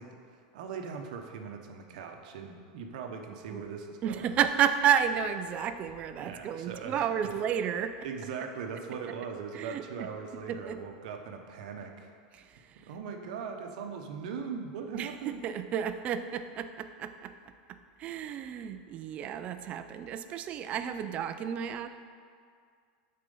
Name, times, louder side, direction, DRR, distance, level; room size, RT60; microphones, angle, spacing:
voice 1, 0.0-4.3 6.2-7.4 8.0-12.1 12.8-15.4, right 6 dB, 70° right, 4 dB, 0.8 m, -40 dB
voice 2, 4.0-8.0 9.5-10.1 10.5-10.8 12.3-12.6 14.9-17.3 18.0-21.9, right 8 dB, 30° right, 10 dB, 0.4 m, -31 dB
8.6 x 4.3 x 5.4 m, 2.1 s
supercardioid pair, 150°, 4 cm